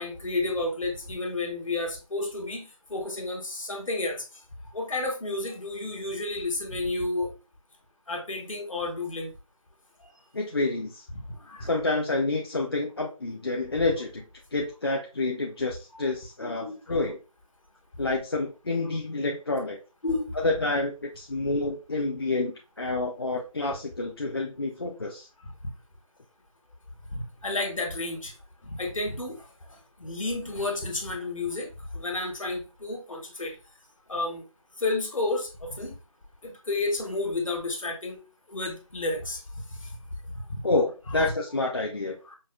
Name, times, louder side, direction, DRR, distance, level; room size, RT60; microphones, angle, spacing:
voice 1, 0.0-4.4 4.7-7.3 8.1-9.3 10.0-10.1 11.1-11.7 16.4-17.0 20.0-20.4 27.1-28.4 28.6-33.6 34.1-34.5 34.8-35.9 36.4-38.2 38.5-40.6 41.1-41.3 42.2-42.4, left 2 dB, 65° left, 2 dB, 1.4 m, -32 dB
voice 2, 10.3-11.0 11.6-14.2 14.5-17.2 18.0-19.8 20.4-25.3 40.6-42.2, left 2 dB, 45° left, 0 dB, 0.5 m, -28 dB
5.2 x 2.0 x 3.5 m, 0.32 s
figure-of-eight pair, 165°, 18 cm